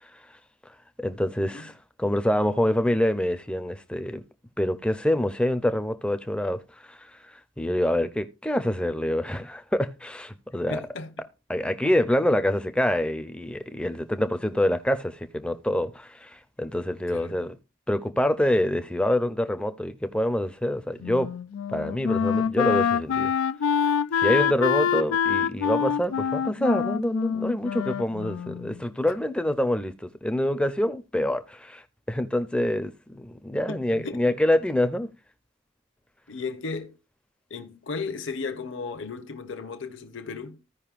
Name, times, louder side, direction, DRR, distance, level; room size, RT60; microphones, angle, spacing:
voice 1, 1.0-1.7 2.0-4.2 4.6-6.6 6.9-7.0 7.6-10.8 11.5-17.5 17.9-21.3 21.7-23.3 24.1-31.8 32.1-35.1, left 1 dB, 5° left, 0.5 m, -26 dB
voice 2, 10.7-11.1 17.1-17.4 29.1-29.2 33.5-34.2 36.3-37.0 37.5-40.6, left 4 dB, 65° left, 0.9 m, -35 dB
Wind instrument woodwind instrument, 21.0-28.8, left 7 dB, 90° left, 0.3 m, -26 dB
15.5 x 5.3 x 2.4 m
head